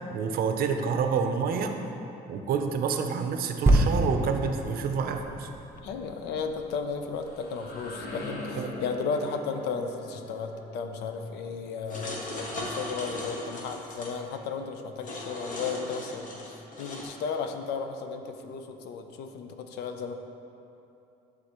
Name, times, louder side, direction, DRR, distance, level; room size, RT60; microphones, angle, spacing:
voice 1, 0.1-1.7 2.3-5.5 8.6-8.7, right 6 dB, 60° right, 6 dB, 0.5 m, -28 dB
sound 1, 3.7-7.2 7.9-8.0, right 1 dB, 15° right, 0.7 m, -27 dB
voice 2, 5.8-20.1, left 5 dB, 80° left, 6 dB, 0.6 m, -34 dB
sound 2, 6.9-12.6, left 2 dB, 65° left, 1.0 m, -42 dB
sound 3, 11.9-14.1 15.0-17.1, left 1 dB, 50° left, 1.2 m, -38 dB
11.0 x 3.8 x 2.9 m, 2.8 s
cardioid pair, 110°, 17 cm